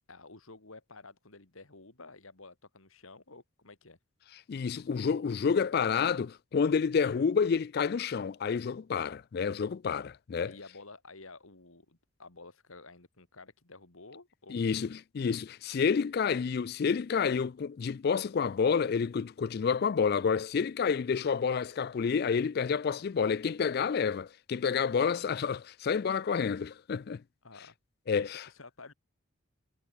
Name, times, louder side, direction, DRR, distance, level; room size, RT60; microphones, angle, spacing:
voice 1, 0.1-4.0 10.4-15.0 27.4-27.8 28.1-28.9, left 3 dB, 75° left, 2.6 m, -51 dB
voice 2, 4.5-10.5 14.5-27.2 28.1-28.4, left 6 dB, 45° left, 0.3 m, -29 dB
head